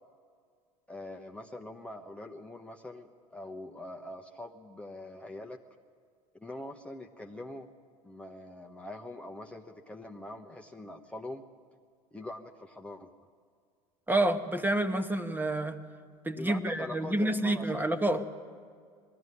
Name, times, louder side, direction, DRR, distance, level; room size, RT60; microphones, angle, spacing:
voice 1, 0.9-5.6 6.4-7.7 8.0-11.4 12.1-13.1 16.4-17.8, left 1 dB, 5° left, 1 dB, 1.1 m, -43 dB
voice 2, 14.1-15.8 16.2-18.3, right 1 dB, 10° right, 8 dB, 1.2 m, -28 dB
20.5 x 14.5 x 9.9 m, 2.1 s
hypercardioid pair, 80°, 20 cm